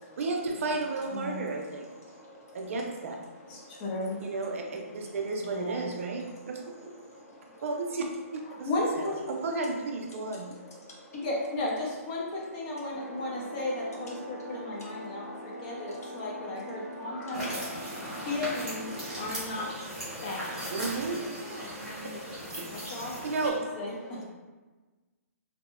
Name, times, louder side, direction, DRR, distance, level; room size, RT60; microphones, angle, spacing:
voice 1, 0.2-1.9 2.5-3.2 4.2-6.7 7.6-8.0 8.6-8.7 9.0-10.5 20.7-21.2 22.6-22.7 23.2-23.6 24.2-24.3, right 3 dB, 60° right, 1 dB, 0.4 m, -32 dB
voice 2, 1.1-1.4 3.5-4.2 5.4-5.9 8.5-9.2 11.1-17.6 18.2-19.7 20.2-20.5 22.7-24.3, left 2 dB, 30° left, -3 dB, 0.6 m, -35 dB
voice 3, 7.1-7.6 10.9-11.2 17.2-17.5 18.1-18.3 18.9-19.2 20.1-20.2 21.6-22.8, left 1 dB, 85° left, -3 dB, 0.8 m, -47 dB
sound 1, 12.9-19.3, equal, 55° left, 0.9 m, -43 dB
sound 2, 17.3-23.5, equal, 5° right, 0.8 m, -38 dB
2.7 x 2.0 x 2.4 m, 1.3 s
hypercardioid pair, 150°, 8 cm